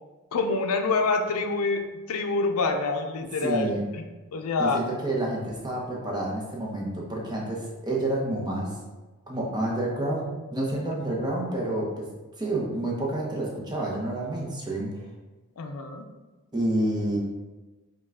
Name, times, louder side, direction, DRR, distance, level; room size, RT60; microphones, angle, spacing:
voice 1, 0.3-3.7 4.0-4.1 4.3-4.8 15.6-16.0, left 3 dB, 75° left, 4 dB, 0.5 m, -26 dB
voice 2, 3.4-3.9 4.6-8.7 9.3-10.3 10.5-12.0 12.4-14.9 16.5-17.2, right 1 dB, 20° right, -3 dB, 0.8 m, -29 dB
5.4 x 2.3 x 3.6 m, 1.2 s
head